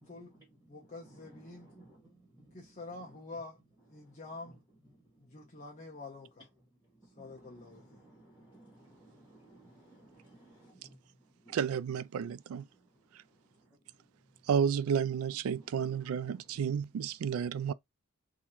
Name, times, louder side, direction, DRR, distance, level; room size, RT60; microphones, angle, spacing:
voice 1, 0.1-0.4 1.0-2.6 2.9-3.2 4.0-4.2 4.9-5.2 6.9-11.6 12.7-14.1 15.5-16.5 17.6-17.7, right 1 dB, 15° right, 1.6 m, -59 dB
voice 2, 0.7-1.7 2.5-3.6 3.9-4.6 5.2-6.5 7.0-8.0, left 3 dB, 35° left, 0.8 m, -47 dB
voice 3, 11.5-12.6 14.5-17.7, right 7 dB, 75° right, 0.3 m, -31 dB
3.7 x 2.7 x 3.0 m
head